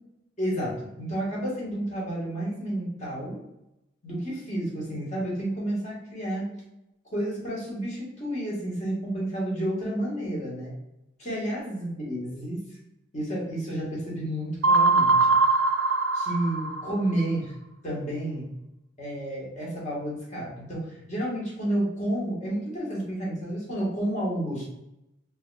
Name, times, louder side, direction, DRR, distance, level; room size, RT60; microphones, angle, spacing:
voice 1, 0.4-3.4 4.0-6.5 7.1-10.7 11.2-12.6 13.1-15.4 16.1-17.5 17.8-18.5 19.0-24.7, right 1 dB, 40° left, -6 dB, 1.4 m, -30 dB
sound 1, 14.6-17.2, right 3 dB, 85° right, 0.4 m, -22 dB
4.5 x 2.9 x 2.3 m, 0.88 s
head